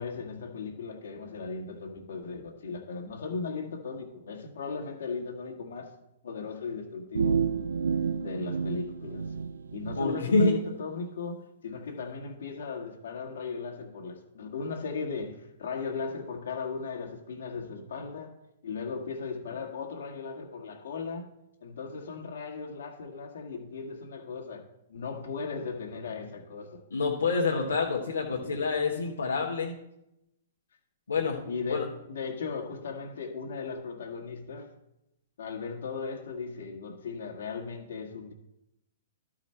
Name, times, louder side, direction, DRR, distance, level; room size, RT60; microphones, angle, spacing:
voice 1, 0.0-5.9 6.2-7.4 8.2-9.4 9.7-18.3 18.6-21.3 21.6-26.8 31.4-34.7 35.4-38.3, left 5 dB, 70° left, 1.6 m, -37 dB
sound 1, 7.1-10.0, right 6 dB, 80° right, 0.3 m, -30 dB
voice 2, 10.0-10.6 26.9-29.7 31.1-31.4 31.7-31.8, left 3 dB, 85° left, 1.1 m, -27 dB
12.0 x 5.0 x 4.4 m
hypercardioid pair, 120°, 0 cm